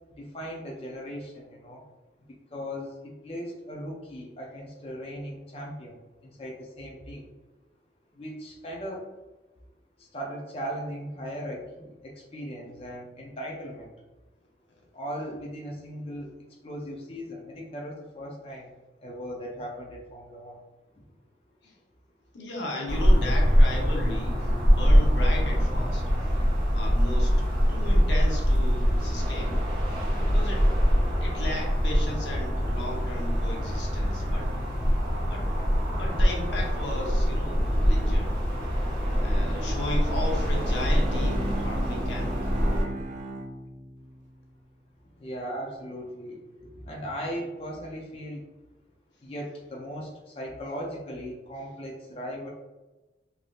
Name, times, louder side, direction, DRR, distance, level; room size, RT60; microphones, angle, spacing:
voice 1, 0.2-1.8 2.5-7.3 8.1-9.1 10.0-13.9 14.9-20.6 21.0-21.1 45.0-48.5 49.2-52.5, equal, 35° left, -2 dB, 0.4 m, -38 dB
voice 2, 22.3-26.4 26.7-29.5 30.3-30.7 31.2-34.5 35.3-35.5 35.8-38.3 39.2-42.4, left 1 dB, 90° left, -1 dB, 0.8 m, -36 dB
sound 1, 22.9-42.8, equal, 25° right, 1.2 m, -24 dB
Bowed string instrument, 40.2-44.2, right 2 dB, 40° right, 0.3 m, -37 dB
3.3 x 2.6 x 2.3 m, 1.1 s
head